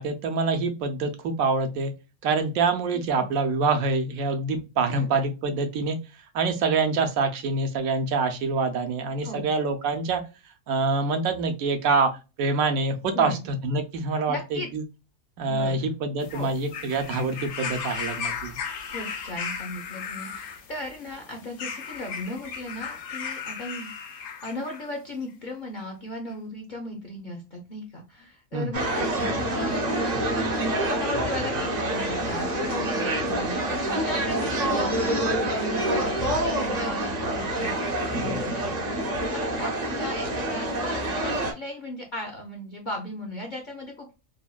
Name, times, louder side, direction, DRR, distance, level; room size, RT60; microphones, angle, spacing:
voice 1, 0.0-1.9 2.2-6.0 6.3-10.2 10.7-12.1 12.4-14.8 15.4-18.5 28.5-28.8, right 3 dB, 80° right, 6 dB, 1.0 m, -25 dB
voice 2, 2.9-3.2 4.9-5.1 9.2-9.5 13.1-13.4 14.3-14.7 15.4-15.8 16.3-16.5 18.9-29.9 30.6-44.2, left 1 dB, 50° left, 1 dB, 0.6 m, -37 dB
sound 1, 16.2-24.9 25.8-25.9, left 6 dB, 90° left, 1.2 m, -36 dB
sound 2, 28.7-41.5, right 1 dB, 50° right, 0.5 m, -27 dB
3.3 x 2.1 x 2.3 m, 0.29 s
omnidirectional pair, 1.5 m